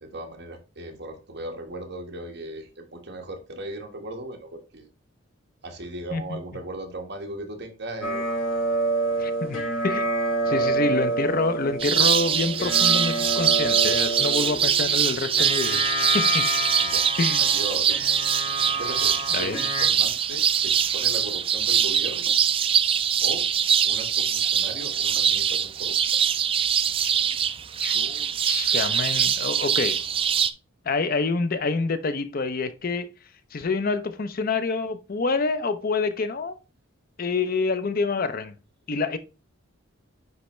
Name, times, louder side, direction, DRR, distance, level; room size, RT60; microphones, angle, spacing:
voice 1, 0.0-4.9 5.6-8.2 10.4-10.7 16.8-17.1 17.4-18.3 18.8-22.3 23.2-23.5 23.8-26.0, right 1 dB, 55° right, 1.5 m, -37 dB
sound 1, 8.0-19.9, right 2 dB, 70° left, 2.0 m, -28 dB
voice 2, 9.2-10.1 10.5-15.8 16.1-16.4 17.2-17.5 19.3-19.6 27.8-30.0 30.8-33.1 33.5-36.6 37.2-38.5 38.9-39.2, left 4 dB, 45° left, 0.5 m, -27 dB
sound 2, 11.8-30.5, right 8 dB, 25° right, 0.3 m, -23 dB
9.6 x 3.4 x 3.1 m
head